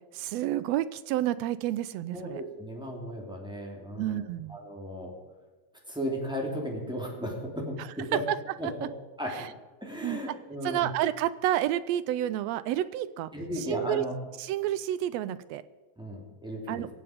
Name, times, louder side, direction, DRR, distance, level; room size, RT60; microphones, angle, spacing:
voice 1, 0.1-2.4 4.0-4.6 7.8-8.4 8.6-8.9 9.3-9.5 10.0-10.2 10.6-14.0 14.4-15.6 16.7-16.9, right 13 dB, 85° right, 14 dB, 1.5 m, -30 dB
voice 2, 2.1-4.2 4.5-5.1 5.9-8.2 8.6-8.7 9.2-9.5 9.8-10.9 13.3-14.1 16.0-16.8, equal, ahead, -1 dB, 2.6 m, -35 dB
23.5 x 7.8 x 5.1 m, 1.3 s
omnidirectional pair, 3.5 m